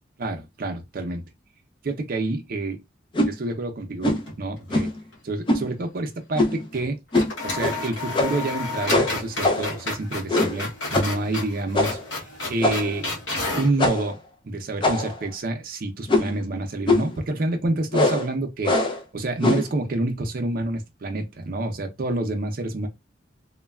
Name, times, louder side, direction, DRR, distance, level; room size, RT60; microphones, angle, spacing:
voice 1, 0.2-1.2 1.8-2.8 3.2-4.9 5.2-7.0 7.4-12.0 12.5-13.1 13.6-14.2 14.4-18.8 19.1-22.9, right 2 dB, 50° right, 0.5 m, -28 dB
sound 1, 3.1-3.3 4.0-4.3 4.7-5.0 5.5-5.7 6.4-6.7 7.1-7.3 7.6-7.8 8.1-8.5 8.9-9.8 10.3-10.6 10.9-11.2 11.7-12.1 12.6-13.0 13.8-14.1 14.8-15.3 16.1-16.4 16.9-17.2 17.9-18.3 18.6-19.0 19.4-19.7, left 2 dB, 25° left, 0.4 m, -22 dB
sound 2, 4.0-4.9 5.1-5.2 6.7-6.9 7.1-13.8, left 2 dB, 65° left, 1.0 m, -31 dB
3.1 x 2.2 x 2.2 m
head